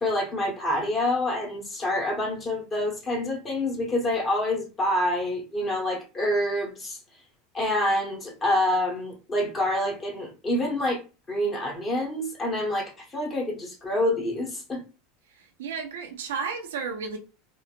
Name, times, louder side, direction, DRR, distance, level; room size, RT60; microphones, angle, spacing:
voice 1, 0.0-7.0 7.5-11.0 11.3-14.8, left 1 dB, 30° left, 1.4 m, -27 dB
voice 2, 15.4-17.2, right 5 dB, 80° right, 0.6 m, -33 dB
3.9 x 2.1 x 2.5 m
hypercardioid pair, 90°, 0 cm